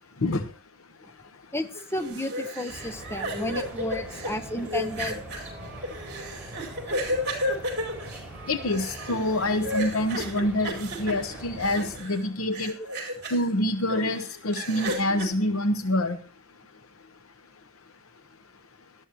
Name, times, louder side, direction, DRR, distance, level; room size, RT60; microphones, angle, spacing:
voice 1, 1.5-5.2 12.8-12.9, left 1 dB, 10° left, 9 dB, 0.6 m, -32 dB
sound 1, 1.7-12.2 12.5-13.4 13.9-15.3, equal, 50° right, 4.4 m, -33 dB
sound 2, 2.7-12.0, right 1 dB, 10° right, 5.1 m, -42 dB
voice 2, 8.5-12.7 13.3-16.2, left 1 dB, 75° left, 9 dB, 0.9 m, -26 dB
18.0 x 12.5 x 3.0 m, 0.36 s
head